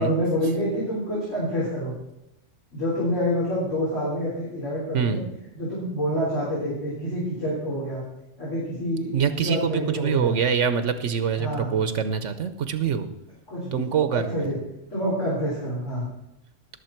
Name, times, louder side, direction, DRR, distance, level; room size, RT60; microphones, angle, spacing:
voice 1, 0.0-1.9 2.7-5.2 5.5-8.0 8.4-10.3 11.4-11.7 13.5-13.9 14.1-14.6 14.9-16.1, equal, 80° left, -7 dB, 4.3 m, -27 dB
voice 2, 4.9-5.2 9.1-13.1 13.7-14.4, right 7 dB, 80° right, 10 dB, 1.2 m, -24 dB
20.0 x 7.1 x 4.5 m, 0.88 s
omnidirectional pair, 1.3 m